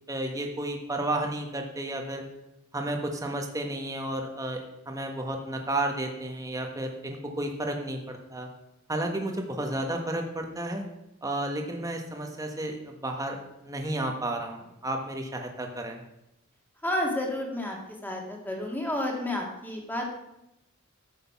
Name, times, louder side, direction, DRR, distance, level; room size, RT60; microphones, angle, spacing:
voice 1, 0.1-2.2 2.7-4.6 4.9-8.5 8.9-10.8 11.2-16.0, right 1 dB, 15° right, 2 dB, 1.3 m, -32 dB
voice 2, 16.8-17.8 18.0-20.1, left 1 dB, 10° left, 0 dB, 2.1 m, -30 dB
11.5 x 7.8 x 5.9 m, 0.87 s
head